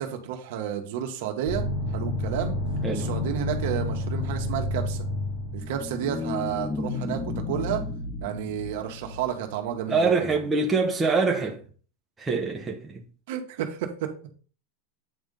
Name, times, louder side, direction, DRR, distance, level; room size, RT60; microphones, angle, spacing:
voice 1, 0.0-1.7 1.9-2.6 2.9-5.0 5.5-7.8 8.2-10.4 13.3-14.1, right 9 dB, 60° right, 1.6 m, -31 dB
sound 1, 1.5-6.0, left 1 dB, 35° left, 2.0 m, -29 dB
sound 2, 5.3-9.7, left 3 dB, 20° left, 1.4 m, -34 dB
voice 2, 9.9-11.6 12.2-13.1, right 4 dB, 10° right, 1.0 m, -24 dB
8.9 x 3.6 x 5.4 m
supercardioid pair, 165°, 0 cm